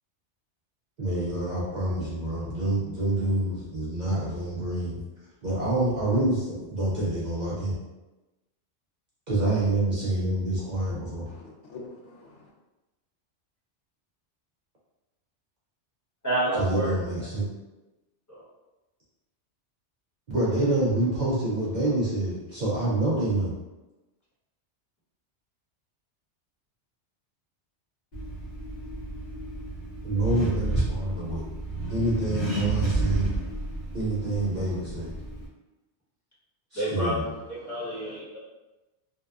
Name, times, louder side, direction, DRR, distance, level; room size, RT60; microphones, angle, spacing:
voice 1, 1.0-5.0 5.4-7.8 9.3-11.3 16.6-17.5 20.3-23.5 30.0-31.4 31.9-33.3 33.9-35.1 36.7-37.2, right 2 dB, 55° right, -8 dB, 0.5 m, -27 dB
voice 2, 11.3-12.5 37.6-38.2, left 3 dB, 85° left, -1 dB, 0.9 m, -47 dB
voice 3, 16.2-16.9 18.3-18.4 36.7-37.3 37.6-38.4, right 1 dB, 15° left, -9 dB, 0.9 m, -28 dB
Accelerating revving vroom, 28.1-35.5, right 2 dB, 45° left, 0.8 m, -31 dB
2.7 x 2.1 x 2.3 m, 1.1 s
omnidirectional pair, 1.2 m